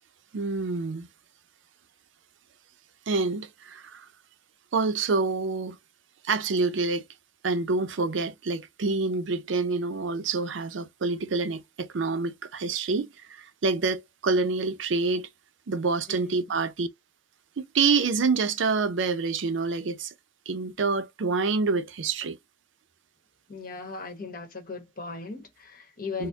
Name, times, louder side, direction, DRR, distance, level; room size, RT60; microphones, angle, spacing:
voice 1, 0.3-1.1 3.1-4.1 4.7-5.8 6.2-7.0 7.4-15.3 15.7-16.9 17.7-20.1 20.5-22.4 26.2-26.3, right 4 dB, 85° right, 0.5 m, -27 dB
voice 2, 16.1-16.5 23.5-26.3, left 4 dB, 50° left, 1.2 m, -38 dB
4.1 x 2.1 x 2.6 m
head